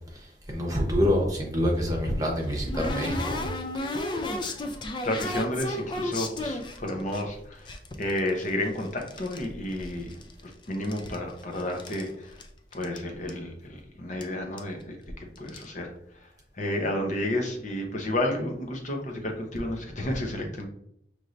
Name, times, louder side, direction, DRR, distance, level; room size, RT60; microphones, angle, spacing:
voice 1, 0.1-3.5, equal, 20° right, 0 dB, 0.9 m, -26 dB
sound 1, 1.7-7.2 7.7-9.4 9.7-10.5 10.7-12.1 12.4-12.5 12.7-13.0 13.3-13.4 14.2-14.3 14.6-14.8 15.4-15.6, left 1 dB, 25° left, 0.4 m, -34 dB
voice 2, 5.0-10.2 10.7-12.4 12.7-15.0 15.4-15.9 16.2-16.3 16.6-20.7, left 1 dB, 45° left, 3 dB, 0.8 m, -31 dB
5.3 x 3.2 x 2.6 m, 0.72 s
head